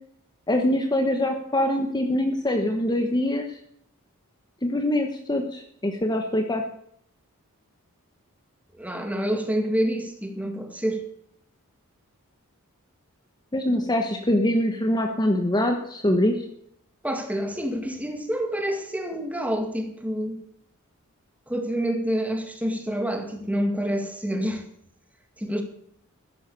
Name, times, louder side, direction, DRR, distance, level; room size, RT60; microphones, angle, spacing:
voice 1, 0.5-3.6 4.6-6.6 13.5-16.4, left 1 dB, 20° left, 1.2 m, -24 dB
voice 2, 8.8-11.0 17.0-20.4 21.5-24.6 25.4-25.6, equal, 5° right, 2.3 m, -27 dB
13.5 x 11.0 x 6.9 m
head